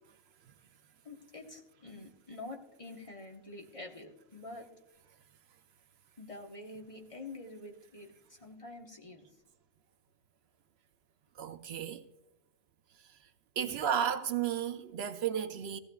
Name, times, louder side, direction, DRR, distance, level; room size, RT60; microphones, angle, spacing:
voice 1, 1.0-4.7 6.2-9.3, left 2 dB, 30° left, 1.1 m, -47 dB
voice 2, 11.4-12.0 13.6-15.8, right 9 dB, 70° right, 0.8 m, -33 dB
16.0 x 15.0 x 2.3 m
omnidirectional pair, 1.1 m